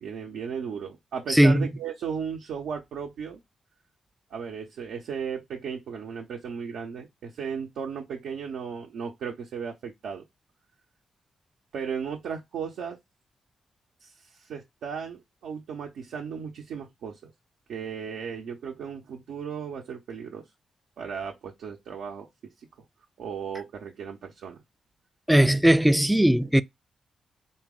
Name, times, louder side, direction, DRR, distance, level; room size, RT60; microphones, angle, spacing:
voice 1, 0.0-3.4 4.3-10.2 11.7-13.0 14.0-17.3 17.7-20.5 21.0-22.3 22.6-22.7 23.2-24.6 26.4-26.6, right 6 dB, 80° right, 0.6 m, -35 dB
voice 2, 1.3-1.7 25.3-26.6, right 1 dB, 5° right, 0.3 m, -19 dB
4.0 x 2.0 x 3.6 m
supercardioid pair, 55°, 0 cm